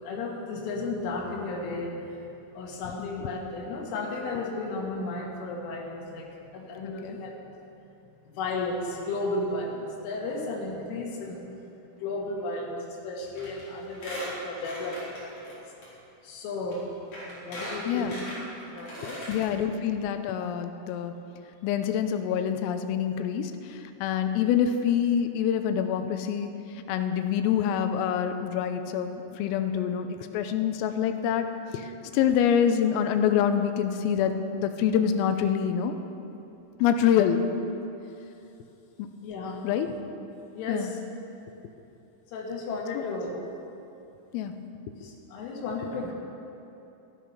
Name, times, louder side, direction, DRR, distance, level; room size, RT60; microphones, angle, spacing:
voice 1, 0.0-2.1 2.5-7.4 8.3-11.4 12.0-15.6 16.2-16.9 17.2-18.2 18.6-19.2 39.2-39.6 40.5-41.0 42.3-43.4 45.0-46.1, left 2 dB, 75° left, -2 dB, 4.3 m, -34 dB
Squeak, 13.4-13.6 13.9-15.5 15.8-15.9 16.7-16.8 17.1-19.4 19.8-19.9 20.1-20.2, equal, 35° left, 4.7 m, -39 dB
voice 2, 19.3-21.1 21.6-26.5 26.9-31.9 32.1-36.0 36.8-37.4 39.0-39.1 39.6-39.9 40.7-40.9 43.0-43.1 44.3-44.5, left 8 dB, 90° left, 8 dB, 3.4 m, -26 dB
13.0 x 12.5 x 5.8 m, 2.9 s
omnidirectional pair, 5.9 m